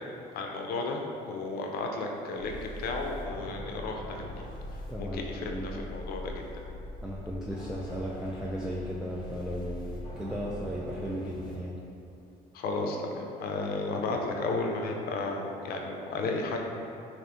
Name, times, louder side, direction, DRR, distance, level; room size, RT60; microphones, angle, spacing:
voice 1, 0.3-4.5 5.0-6.4 12.5-16.6, left 3 dB, 65° left, 2 dB, 0.5 m, -33 dB
sound 1, 2.4-11.6, left 1 dB, 25° left, 0.7 m, -41 dB
voice 2, 4.9-5.8 7.0-11.8, equal, 5° right, -5 dB, 0.3 m, -36 dB
3.4 x 2.5 x 3.7 m, 2.7 s
cardioid pair, 110°, 17 cm